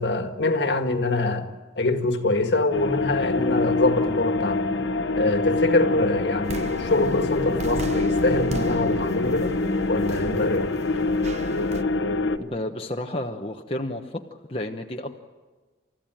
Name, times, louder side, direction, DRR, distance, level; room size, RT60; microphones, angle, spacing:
voice 1, 0.0-1.5 1.8-4.6 5.2-9.6 9.9-10.7, left 2 dB, 70° left, 1.8 m, -24 dB
sound 1, 2.7-12.4, left 3 dB, 90° left, 1.2 m, -25 dB
sound 2, 6.4-11.8, right 2 dB, 35° right, 0.8 m, -37 dB
voice 2, 12.4-14.1 14.5-15.2, left 1 dB, 30° left, 1.1 m, -31 dB
29.5 x 14.5 x 9.2 m
head